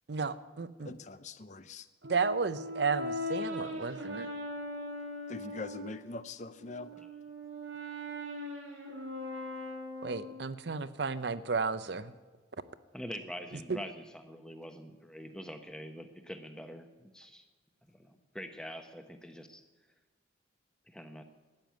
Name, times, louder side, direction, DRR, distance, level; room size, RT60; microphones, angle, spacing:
voice 1, 0.1-1.0 2.1-4.3 10.0-12.1 13.7-13.8, right 4 dB, 60° right, 14 dB, 0.6 m, -33 dB
voice 2, 0.8-1.9 5.3-6.9, left 3 dB, 40° left, 13 dB, 0.5 m, -43 dB
Brass instrument, 2.0-6.0 6.5-10.6, left 1 dB, 90° right, 2.8 m, -40 dB
voice 3, 12.9-16.9 17.1-17.4 17.9-19.6 20.9-21.2, equal, 5° left, 6 dB, 1.0 m, -45 dB
13.0 x 9.0 x 9.2 m, 1.3 s
head